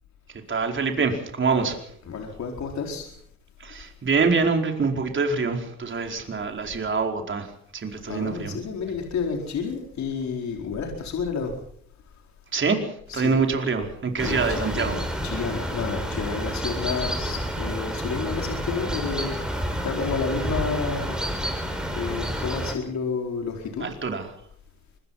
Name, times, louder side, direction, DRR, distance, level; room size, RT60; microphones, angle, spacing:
voice 1, 0.3-1.9 3.6-8.6 12.5-15.1 23.8-24.3, right 4 dB, 40° right, 3 dB, 4.8 m, -25 dB
voice 2, 2.0-3.1 8.1-11.5 13.1-13.4 14.2-21.5 21.9-23.8, left 5 dB, 65° left, 2 dB, 4.7 m, -30 dB
sound 1, 14.2-22.7, equal, 5° right, 5.9 m, -29 dB
25.0 x 21.0 x 5.8 m, 0.62 s
cardioid pair, 90°, 30 cm